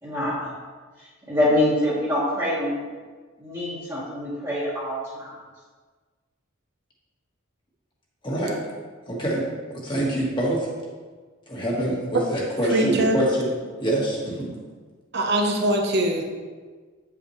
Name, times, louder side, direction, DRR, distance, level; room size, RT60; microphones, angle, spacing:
voice 1, 0.0-0.5 1.0-2.8 3.4-5.3, left 1 dB, 15° right, -10 dB, 1.5 m, -25 dB
voice 2, 8.2-8.6 9.1-9.4 9.7-10.7 11.5-13.5 13.8-14.5, right 1 dB, 20° left, -4 dB, 1.5 m, -25 dB
voice 3, 12.7-13.2 15.1-16.2, right 1 dB, 50° right, 1 dB, 0.9 m, -22 dB
9.2 x 5.8 x 3.2 m, 1.4 s
head